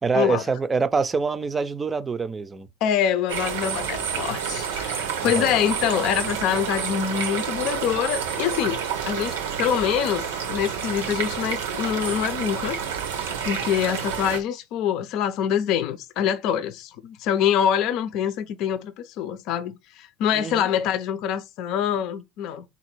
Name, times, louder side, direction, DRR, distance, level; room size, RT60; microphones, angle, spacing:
voice 1, 0.0-2.7 5.2-5.5 20.3-20.7, right 4 dB, 25° right, 0.5 m, -25 dB
voice 2, 2.8-8.8 9.0-22.6, left 9 dB, 60° left, 0.6 m, -25 dB
sound 1, 3.3-14.4, right 7 dB, 85° right, 0.8 m, -29 dB
4.0 x 2.5 x 4.4 m
supercardioid pair, 95°, 0 cm